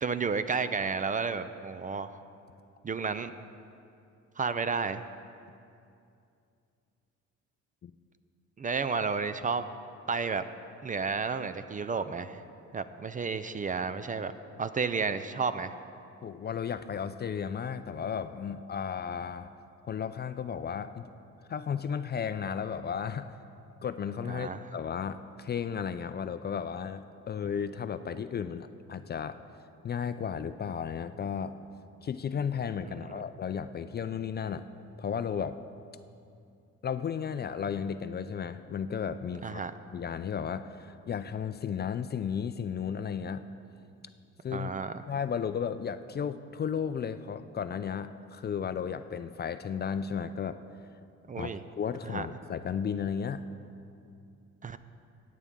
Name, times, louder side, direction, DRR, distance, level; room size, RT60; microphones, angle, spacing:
voice 1, 0.0-2.2 2.8-3.3 4.4-5.0 8.6-9.7 10.1-10.4 10.8-12.4 12.7-14.3 14.6-15.7 24.3-24.6 32.9-33.2 39.4-39.7 44.5-44.9 51.3-51.6 52.1-52.3 54.6-54.8, right 5 dB, 25° right, 11 dB, 0.4 m, -32 dB
voice 2, 16.2-19.5 19.9-21.1 21.5-23.4 23.8-29.4 29.8-31.5 32.0-34.7 35.0-35.6 36.8-39.6 39.9-43.4 44.4-44.7 45.1-50.6 51.4-53.4, left 7 dB, 35° left, 11 dB, 0.4 m, -34 dB
16.0 x 8.4 x 3.7 m, 2.5 s
cardioid pair, 90°, 30 cm